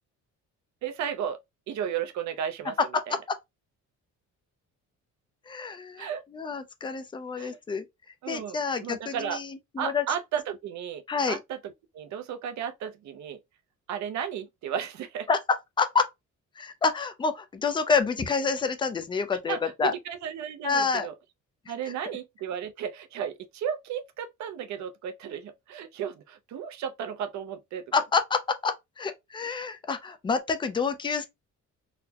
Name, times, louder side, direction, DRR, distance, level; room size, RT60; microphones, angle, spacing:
voice 1, 0.8-1.4 1.7-3.2 6.0-6.2 7.4-7.6 8.2-9.4 9.8-13.4 13.9-15.3 19.5-21.2 21.7-27.8, right 8 dB, 65° right, 0.5 m, -34 dB
voice 2, 5.5-7.8 8.3-10.0 11.1-11.4 15.3-16.1 16.6-19.9 20.6-21.1 27.9-31.3, left 5 dB, 15° left, 0.3 m, -28 dB
4.0 x 2.0 x 2.7 m
cardioid pair, 165°, 31 cm